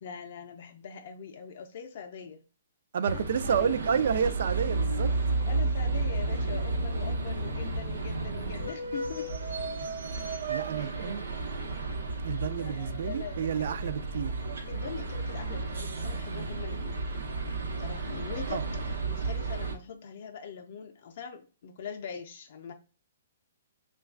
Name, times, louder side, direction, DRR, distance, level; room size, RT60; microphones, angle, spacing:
voice 1, 0.0-2.4 3.1-3.8 5.4-9.6 10.7-11.2 12.6-14.1 14.6-17.1 17.8-22.7, left 6 dB, 45° left, 0.4 m, -42 dB
voice 2, 2.9-5.1 10.5-11.3 12.2-14.3 18.5-18.6, right 7 dB, 50° right, 0.3 m, -30 dB
sound 1, 3.1-19.8, right 3 dB, 85° right, 0.8 m, -32 dB
3.1 x 2.3 x 3.5 m
hypercardioid pair, 170°, 0 cm